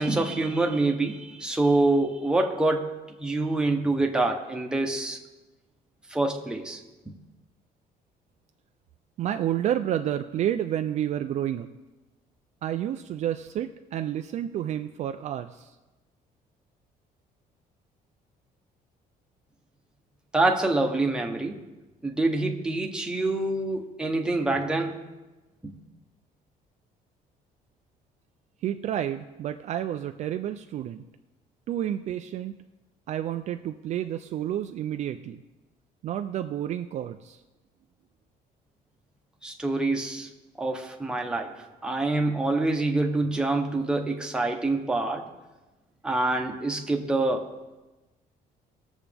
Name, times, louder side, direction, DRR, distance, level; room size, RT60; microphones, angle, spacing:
voice 1, 0.0-5.2 6.1-6.8 20.3-21.6 22.0-25.0 39.4-40.3 40.6-41.5 41.8-45.3 46.0-47.5, right 2 dB, 5° right, 2 dB, 1.0 m, -26 dB
voice 2, 9.2-11.7 12.6-15.7 28.6-31.0 31.7-32.5 33.1-35.4 36.0-37.4, right 11 dB, 45° right, 8 dB, 0.4 m, -30 dB
20.0 x 7.2 x 3.4 m, 1.1 s
cardioid pair, 170°, 16 cm